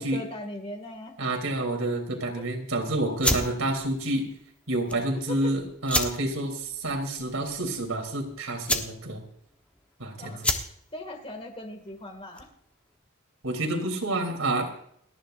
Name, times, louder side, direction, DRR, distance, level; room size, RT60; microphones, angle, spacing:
voice 1, 0.0-1.2 5.3-5.5 10.2-10.5 10.9-12.5, left 1 dB, 25° left, 4 dB, 2.3 m, -39 dB
voice 2, 1.2-4.3 4.7-9.2 10.0-10.4 13.4-14.7, right 1 dB, 75° right, 2 dB, 3.5 m, -29 dB
sound 1, 3.1-12.7, left 1 dB, 5° left, 1.2 m, -32 dB
30.0 x 10.5 x 2.6 m, 0.68 s
head